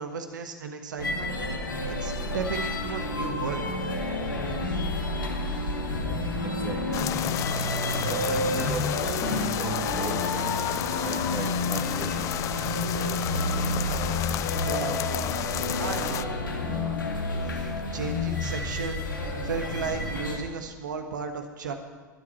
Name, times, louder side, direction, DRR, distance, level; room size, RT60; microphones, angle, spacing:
voice 1, 0.0-1.3 1.8-3.6 14.5-15.0 15.8-16.4 17.4-19.0 19.4-21.7, right 5 dB, 70° right, 6 dB, 1.3 m, -34 dB
sound 1, 1.0-20.4, left 2 dB, 80° left, 2.1 m, -29 dB
voice 2, 6.4-7.1 8.1-10.6 11.0-12.3, right 4 dB, 20° right, 5 dB, 1.6 m, -38 dB
sound 2, 6.9-16.2, left 14 dB, 30° left, 0.4 m, -32 dB
24.0 x 8.7 x 4.4 m, 1.4 s
figure-of-eight pair, 95°, 11 cm